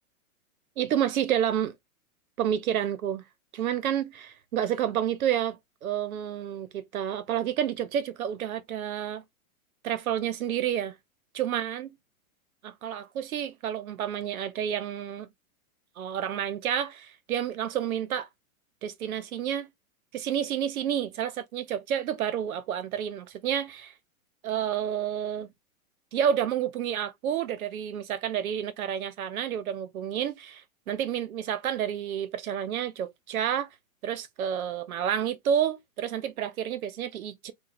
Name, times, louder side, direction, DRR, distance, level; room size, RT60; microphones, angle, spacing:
voice 1, 0.8-1.7 2.4-3.3 3.5-9.2 9.8-11.0 11.3-11.9 12.6-15.3 16.0-18.3 18.8-19.7 20.1-23.9 24.4-25.5 26.1-33.7 34.0-37.5, right 9 dB, 75° right, 0.9 m, -30 dB
4.2 x 2.4 x 2.5 m
hypercardioid pair, 160°, 43 cm